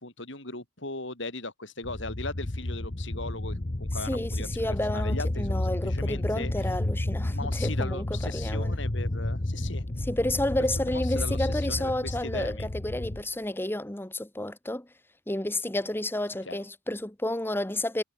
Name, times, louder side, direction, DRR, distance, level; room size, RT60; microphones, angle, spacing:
voice 1, 0.0-6.7 7.3-9.8 10.8-12.7 16.4-16.6, left 2 dB, 60° left, 6.3 m, -39 dB
sound 1, 1.8-13.2, left 1 dB, 40° left, 1.2 m, -31 dB
voice 2, 4.0-8.7 10.1-14.9 15.3-18.0, left 1 dB, 10° left, 1.1 m, -31 dB
head